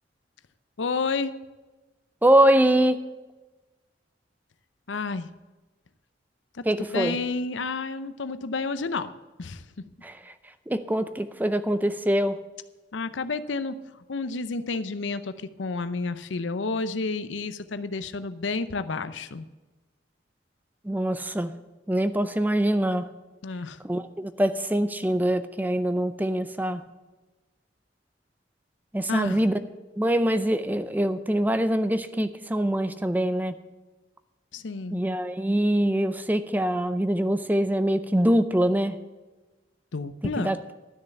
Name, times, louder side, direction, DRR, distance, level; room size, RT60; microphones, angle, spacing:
voice 1, 0.8-1.3 4.9-5.3 6.5-6.6 6.9-9.1 9.4-9.6 12.9-13.8 14.1-19.5 23.4-23.8 29.1-29.4 34.5-35.0 39.9-40.6, left 3 dB, 85° left, 12 dB, 0.7 m, -30 dB
voice 2, 2.2-3.0 6.6-7.2 10.0-10.3 10.7-12.4 20.8-21.5 21.9-23.1 23.8-26.8 28.9-29.6 30.0-33.5 34.9-39.0 40.4-40.6, right 1 dB, 10° right, 11 dB, 0.5 m, -24 dB
12.5 x 6.6 x 8.2 m, 1.2 s
head